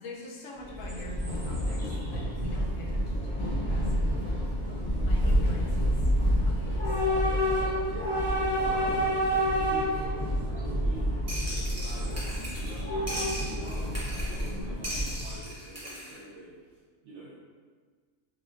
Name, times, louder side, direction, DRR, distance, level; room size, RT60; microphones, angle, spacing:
voice 1, 0.0-4.2 5.0-7.4 14.4-14.8, left 1 dB, 75° left, -3 dB, 0.9 m, -44 dB
Train / Subway metro underground, 0.6-15.5, equal, 40° left, 0.4 m, -28 dB
sound 1, 0.6-2.5 7.0-7.1 7.5-7.9 9.9-10.0 10.4-10.7 11.8-13.2, right 1 dB, 35° right, 0.5 m, -52 dB
voice 2, 7.5-11.1 11.5-12.9 13.3-16.5 17.0-17.3, right 2 dB, 65° right, -7 dB, 0.9 m, -44 dB
sound 2, 11.3-12.8 13.1-14.5 14.8-16.2, equal, 15° right, 0.9 m, -38 dB
3.8 x 3.1 x 2.4 m, 1.5 s
omnidirectional pair, 1.4 m